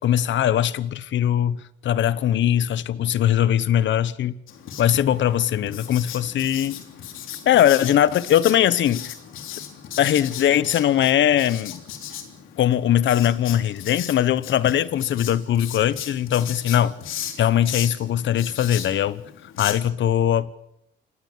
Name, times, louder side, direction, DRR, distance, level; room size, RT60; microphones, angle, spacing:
voice 1, 0.0-4.4 4.8-6.8 7.4-9.1 10.0-11.8 12.6-16.9 17.4-19.2 19.6-20.5, left 11 dB, 70° left, 1.1 m, -20 dB
Writing, 4.5-19.7, left 10 dB, 85° left, 3.4 m, -37 dB
27.0 x 18.5 x 7.4 m
cardioid pair, 90°, 20 cm